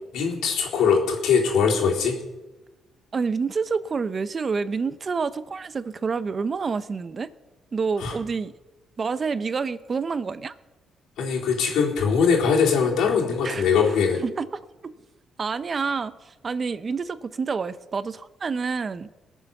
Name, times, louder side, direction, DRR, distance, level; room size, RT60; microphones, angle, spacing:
voice 1, 0.1-2.2 8.0-8.2 11.2-14.2, left 6 dB, 80° left, 3.8 m, -21 dB
voice 2, 3.1-7.3 7.7-8.5 9.0-10.5 13.4-13.7 14.2-14.9 15.4-19.1, right 5 dB, 40° right, 0.7 m, -28 dB
20.5 x 7.2 x 7.1 m
cardioid pair, 90°, 0 cm